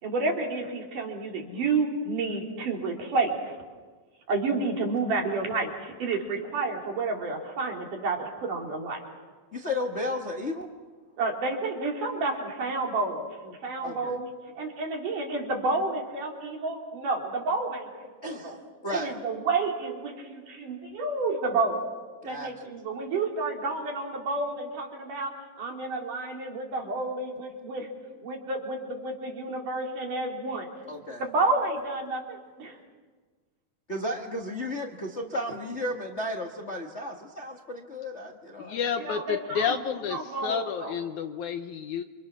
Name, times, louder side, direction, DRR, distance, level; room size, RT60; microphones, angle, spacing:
voice 1, 0.0-3.5 4.3-9.0 11.2-14.3 14.6-17.9 18.2-18.6 18.9-21.8 22.2-27.9 28.2-30.7 31.2-32.8 35.5-35.6 39.1-39.8 40.1-40.9, right 3 dB, 60° right, 0 dB, 5.0 m, -30 dB
voice 2, 9.5-10.7 13.8-14.2 18.2-19.1 22.2-22.7 30.9-31.2 33.9-38.8, left 1 dB, 35° left, 0 dB, 1.1 m, -34 dB
voice 3, 38.6-42.0, left 7 dB, 70° left, 7 dB, 2.1 m, -30 dB
29.0 x 26.0 x 6.2 m, 1.4 s
omnidirectional pair, 4.1 m